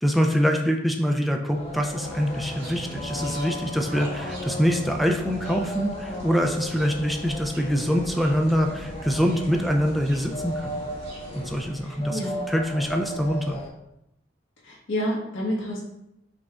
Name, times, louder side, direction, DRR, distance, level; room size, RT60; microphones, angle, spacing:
voice 1, 0.0-10.7 11.3-12.2 12.5-13.6, equal, ahead, 2 dB, 0.3 m, -24 dB
sound 1, 1.5-13.7, left 1 dB, 35° left, 0.6 m, -36 dB
sound 2, 2.0-11.7, equal, 60° right, 1.5 m, -40 dB
voice 2, 11.8-12.4 14.6-15.9, equal, 75° left, -3 dB, 1.0 m, -29 dB
5.0 x 2.3 x 3.5 m, 0.84 s
head